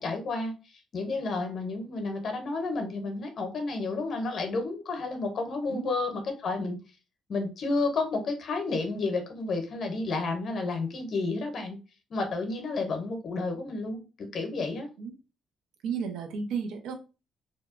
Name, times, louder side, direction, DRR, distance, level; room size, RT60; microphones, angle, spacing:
voice 1, 0.0-6.8 7.3-11.8 12.1-14.9, left 3 dB, 60° left, 5 dB, 0.6 m, -31 dB
voice 2, 15.8-16.9, right 6 dB, 85° right, 5 dB, 0.5 m, -33 dB
2.7 x 2.1 x 2.4 m, 0.31 s
cardioid pair, 90°, 0 cm